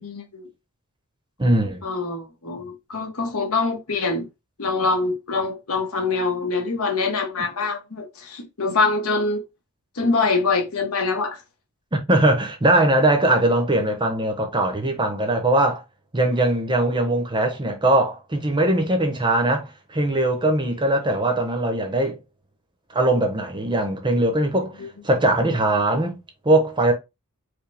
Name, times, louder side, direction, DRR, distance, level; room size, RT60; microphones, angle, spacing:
voice 1, 0.0-0.5 1.8-4.2 4.6-9.4 10.0-11.4, left 3 dB, 70° left, 1.1 m, -24 dB
voice 2, 1.4-1.8 11.9-15.8 16.1-22.2 22.9-26.2 26.4-26.9, right 1 dB, 20° right, 0.8 m, -21 dB
4.8 x 2.2 x 3.3 m
head